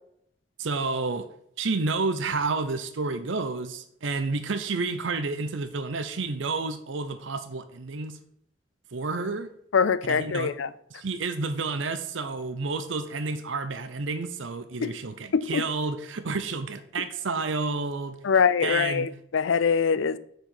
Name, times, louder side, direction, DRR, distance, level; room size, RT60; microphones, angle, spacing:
voice 1, 0.6-1.2 1.6-8.2 8.9-9.5 10.1-10.5 10.9-18.2 18.6-19.1, right 3 dB, 80° right, 0.7 m, -30 dB
voice 2, 9.7-10.7 14.8-15.0 15.3-15.7 18.2-20.2, left 6 dB, 80° left, 0.5 m, -23 dB
6.7 x 4.9 x 6.0 m
head